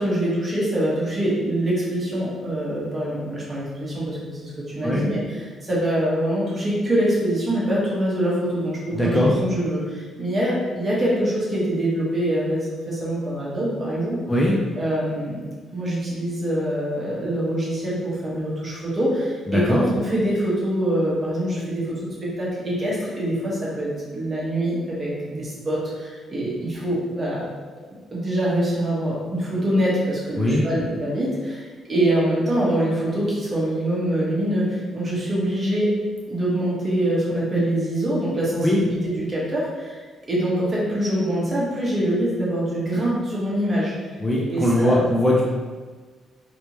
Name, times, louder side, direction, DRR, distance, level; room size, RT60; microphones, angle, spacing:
voice 1, 0.0-14.2 14.8-15.4 15.7-27.4 28.1-35.9 36.3-43.9 44.5-45.0, right 1 dB, 30° right, -7 dB, 1.4 m, -24 dB
voice 2, 8.9-9.4 14.3-14.6 19.5-19.8 30.4-30.7 38.6-38.8 44.2-45.4, left 1 dB, 15° left, -3 dB, 0.5 m, -20 dB
3.2 x 3.0 x 3.0 m, 1.4 s
cardioid pair, 90°, 0 cm